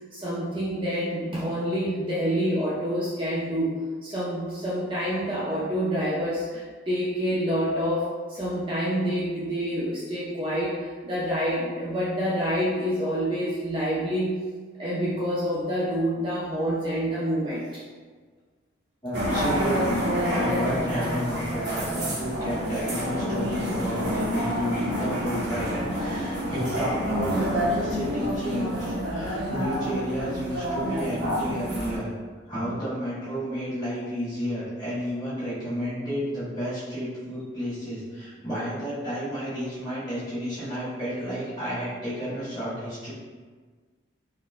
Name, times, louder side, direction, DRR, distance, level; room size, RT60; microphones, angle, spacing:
voice 1, 0.1-3.7 4.0-10.8 11.0-14.3 14.8-17.6 32.6-32.7, equal, 25° right, -8 dB, 0.4 m, -27 dB
voice 2, 19.0-32.1 32.5-43.1, equal, 20° left, -11 dB, 1.4 m, -31 dB
sound 1, 19.1-32.0, equal, 55° right, 0.8 m, -28 dB
4.2 x 2.2 x 2.4 m, 1.5 s
head